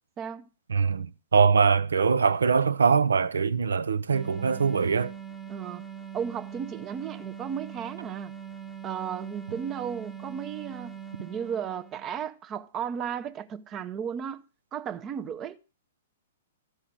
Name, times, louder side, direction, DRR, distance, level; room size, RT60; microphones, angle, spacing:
voice 1, 0.2-0.5 5.5-5.8 6.1-8.3 8.8-14.4 14.7-15.6, right 8 dB, 25° right, 0.6 m, -34 dB
voice 2, 0.7-5.1, right 5 dB, 80° right, 0.5 m, -23 dB
sound 1, 4.1-12.2, right 8 dB, 5° left, 0.8 m, -42 dB
13.0 x 5.6 x 6.1 m
hypercardioid pair, 120°, 0 cm